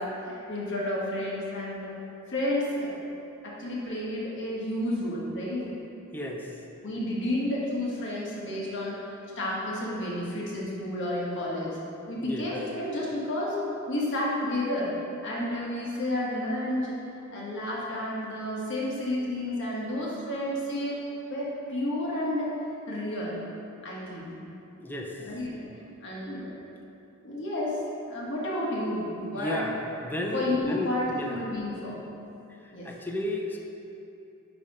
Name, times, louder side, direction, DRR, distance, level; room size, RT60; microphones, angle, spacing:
voice 1, 0.0-1.9 2.3-2.9 3.4-5.7 6.8-9.0 9.3-11.8 12.1-13.6 13.9-14.9 15.2-17.0 17.3-21.0 21.3-22.5 22.9-23.4 23.8-24.3 25.2-25.7 26.0-26.6 27.2-27.8 28.1-29.6 30.3-32.0 32.7-32.9, left 1 dB, 60° left, -5 dB, 1.6 m, -31 dB
voice 2, 6.1-6.4 12.2-12.4 24.8-25.1 29.3-29.7 30.0-31.4 32.8-33.6, left 1 dB, 10° left, 0 dB, 0.6 m, -32 dB
9.9 x 3.4 x 5.0 m, 2.8 s
head